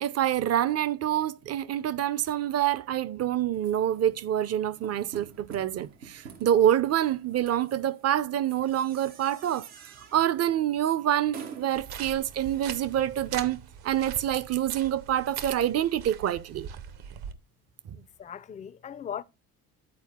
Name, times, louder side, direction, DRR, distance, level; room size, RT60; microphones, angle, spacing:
voice 1, 0.0-9.7 10.1-13.6 13.8-16.7 17.9-18.0, right 11 dB, 35° right, 0.5 m, -26 dB
sound 1, 3.5-13.4, right 7 dB, 90° right, 1.1 m, -49 dB
sound 2, 11.7-17.3, right 8 dB, 60° right, 0.9 m, -42 dB
voice 2, 18.0-19.2, left 8 dB, 20° left, 0.3 m, -39 dB
9.5 x 4.1 x 3.5 m
supercardioid pair, 70°, 43 cm